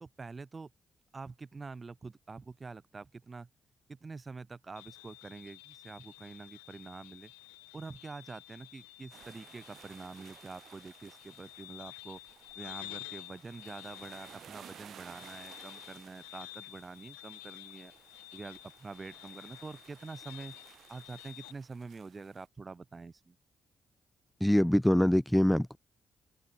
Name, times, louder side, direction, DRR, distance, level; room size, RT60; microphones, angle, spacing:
voice 1, 0.0-0.7 1.1-3.5 3.9-7.3 7.7-12.2 12.5-17.9 18.3-20.6 20.9-23.4, right 4 dB, 35° right, 0.6 m, -46 dB
sound 1, 4.8-21.5, left 34 dB, 85° left, 0.3 m, -51 dB
sound 2, 9.1-22.5, right 9 dB, 65° right, 6.2 m, -56 dB
voice 2, 24.4-25.8, left 1 dB, 5° left, 0.3 m, -24 dB
open air
hypercardioid pair, 40°, 0 cm